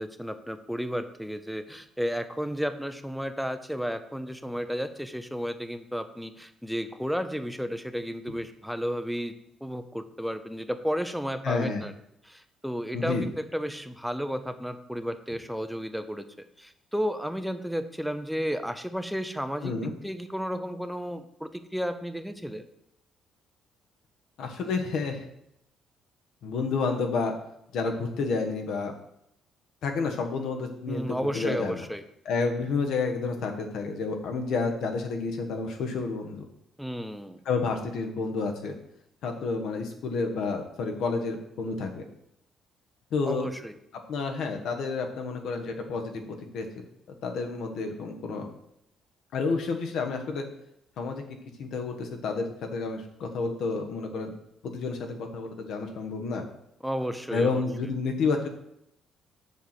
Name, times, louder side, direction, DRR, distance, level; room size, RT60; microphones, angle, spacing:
voice 1, 0.0-9.3 9.6-11.9 12.2-16.2 16.6-22.7 30.9-32.0 36.8-37.4 43.2-43.7 56.8-57.6, equal, ahead, 9 dB, 0.5 m, -33 dB
voice 2, 11.4-11.8 12.9-13.3 19.6-19.9 24.4-25.2 26.4-27.3 27.7-28.9 29.8-31.8 32.2-36.4 37.4-38.7 39.2-42.0 43.1-43.5 44.1-46.7 47.2-48.5 49.3-50.4 51.0-51.2 51.6-54.3 54.6-56.4 57.3-58.5, left 4 dB, 70° left, 4 dB, 1.3 m, -30 dB
6.8 x 4.4 x 6.7 m, 0.77 s
cardioid pair, 140°, 0 cm